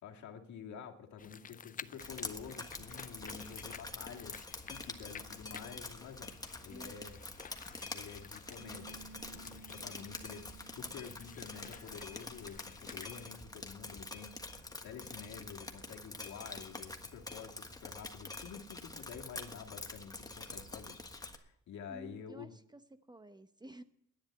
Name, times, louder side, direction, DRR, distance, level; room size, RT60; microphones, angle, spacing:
voice 1, 0.0-6.3 6.6-7.2 7.9-14.4 14.8-22.5, left 7 dB, 70° left, 2 dB, 2.1 m, -49 dB
sound 1, 1.2-13.3, left 7 dB, 30° left, 0.5 m, -53 dB
Drip, 2.0-21.4, left 2 dB, 10° left, 1.4 m, -46 dB
voice 2, 6.7-7.1 21.9-22.8 23.1-23.8, right 1 dB, 15° right, 11 dB, 0.8 m, -52 dB
Bass guitar, 8.6-14.8, right 3 dB, 85° right, 5.2 m, -59 dB
10.5 x 10.0 x 8.7 m, 0.76 s
cardioid pair, 90°, 30 cm